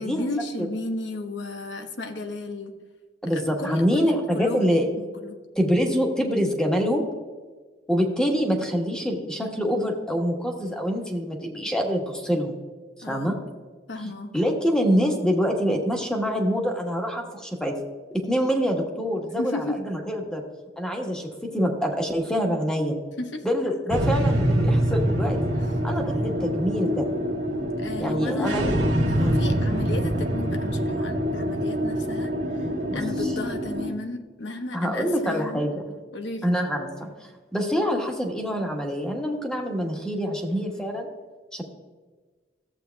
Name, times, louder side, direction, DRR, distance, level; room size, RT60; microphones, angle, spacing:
voice 1, 0.0-2.7 3.3-5.4 13.0-13.3 13.9-14.3 19.4-19.8 23.2-23.5 25.5-25.7 27.8-28.6 29.1-35.7 36.1-36.5, left 2 dB, 80° left, 5 dB, 1.0 m, -34 dB
voice 2, 3.2-4.9 5.6-7.1 7.9-12.6 13.1-13.4 14.3-17.8 18.1-20.4 20.8-23.0 23.4-25.4 25.8-27.1 28.0-28.7 29.2-29.4 32.9-33.3 34.7-35.8 36.4-41.1 41.5-41.6, equal, 5° left, 1 dB, 1.2 m, -25 dB
sound 1, 23.9-33.9, equal, 70° right, 1.8 m, -25 dB
14.0 x 7.8 x 2.3 m, 1.4 s
head